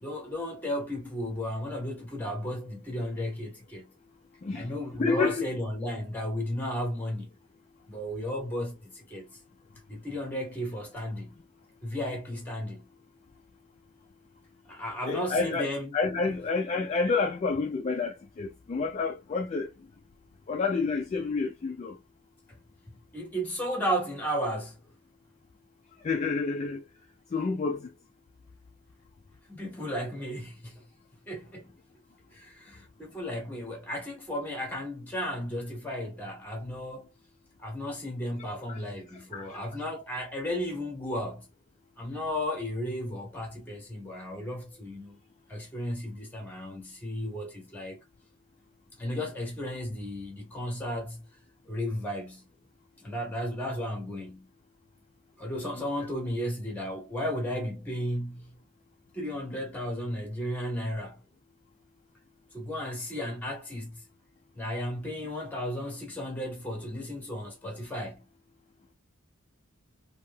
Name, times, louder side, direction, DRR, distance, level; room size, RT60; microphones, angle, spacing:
voice 1, 0.0-3.9 4.5-7.3 7.9-9.4 9.9-11.4 11.8-12.9 14.7-15.9 23.1-24.8 29.5-30.8 31.3-31.8 32.3-37.1 37.6-41.5 42.0-45.2 45.5-48.0 49.0-51.3 51.7-52.5 53.0-54.5 55.4-58.6 59.1-61.2 62.5-64.0 64.5-68.3, equal, 10° left, 1.2 m, -34 dB
voice 2, 5.0-5.5 15.0-15.7 15.9-19.7 20.5-22.0 26.0-26.8 27.3-27.9 38.7-38.8 39.3-39.6, left 4 dB, 35° left, 0.3 m, -29 dB
3.1 x 2.7 x 2.2 m
head